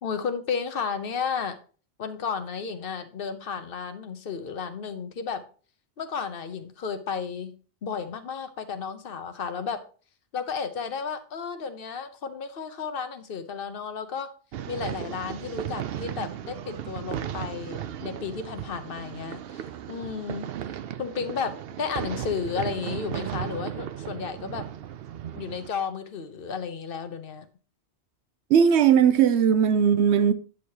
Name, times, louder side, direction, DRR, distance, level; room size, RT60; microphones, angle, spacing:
voice 1, 0.0-1.6 2.0-5.4 6.0-7.5 7.8-9.8 10.3-14.3 14.7-20.5 21.0-24.6 25.4-27.5, left 6 dB, 60° left, 1.0 m, -33 dB
sound 1, 14.5-25.7, right 10 dB, 65° right, 0.7 m, -36 dB
voice 2, 28.5-30.3, right 8 dB, 85° right, 0.9 m, -18 dB
9.9 x 6.4 x 2.8 m
omnidirectional pair, 1.1 m